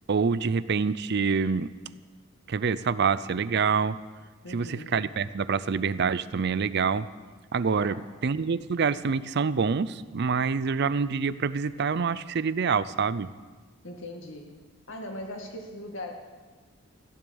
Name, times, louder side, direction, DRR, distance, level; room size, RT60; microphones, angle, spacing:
voice 1, 0.1-1.7 2.5-4.0 4.5-7.1 7.5-8.0 8.2-13.3, right 5 dB, 55° right, 16 dB, 0.5 m, -26 dB
voice 2, 4.4-5.0 7.8-8.1 13.8-14.6 14.9-16.1, left 1 dB, 60° left, 2 dB, 2.1 m, -39 dB
15.0 x 11.0 x 7.0 m, 1.3 s
head